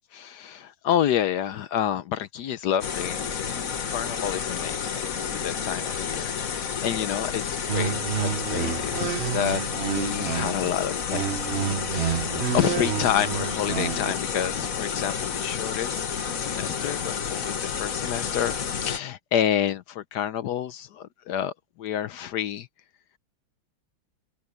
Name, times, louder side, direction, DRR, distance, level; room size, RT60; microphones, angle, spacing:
voice 1, 0.1-11.2 11.9-16.1 16.4-21.5 21.8-22.7, left 10 dB, 70° left, 1.2 m, -29 dB
sound 1, 2.8-19.0, left 7 dB, 50° left, 1.6 m, -30 dB
sound 2, 7.7-10.7 11.1-14.1, right 9 dB, 50° right, 0.8 m, -29 dB
omnidirectional pair, 2.1 m